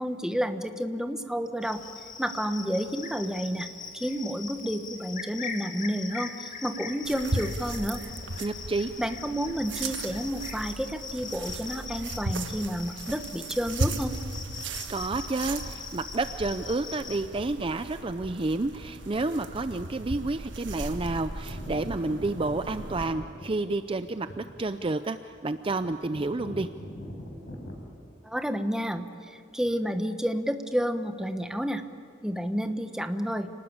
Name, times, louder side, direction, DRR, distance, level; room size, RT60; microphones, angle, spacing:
voice 1, 0.0-1.8 2.2-3.7 3.9-8.0 9.0-14.1 28.2-31.8 32.2-33.5, equal, 5° right, 7 dB, 1.1 m, -30 dB
Cricket, 1.6-17.2, left 5 dB, 45° left, 2.3 m, -41 dB
sound 1, 7.0-23.0, right 2 dB, 75° right, 1.5 m, -37 dB
voice 2, 8.4-8.9 14.9-26.7, right 2 dB, 30° right, 10 dB, 0.5 m, -30 dB
sound 2, 17.2-17.6 18.7-18.8 19.5-19.8 20.1-20.2 20.5-27.9, equal, 90° left, 4.9 m, -43 dB
29.5 x 19.5 x 8.7 m, 2.5 s
head